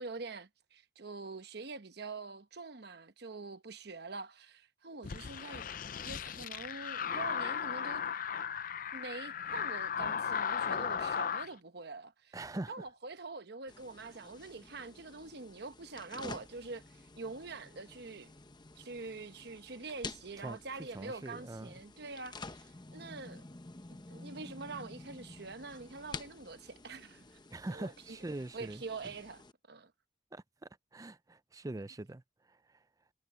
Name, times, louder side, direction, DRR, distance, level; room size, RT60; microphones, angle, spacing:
voice 1, 0.0-5.6 6.0-8.0 8.9-18.3 18.7-23.4 24.1-27.2 27.7-28.2 28.5-29.4 29.7-29.9, right 3 dB, 60° right, 1.0 m, -45 dB
sound 1, 5.0-11.5, left 7 dB, 45° left, 0.5 m, -36 dB
voice 2, 12.3-12.7 20.4-20.6 20.9-21.7 27.5-28.8 30.3-30.4 30.9-32.2, right 2 dB, 20° right, 0.4 m, -42 dB
sound 2, 13.7-29.5, left 3 dB, 25° left, 0.8 m, -50 dB
head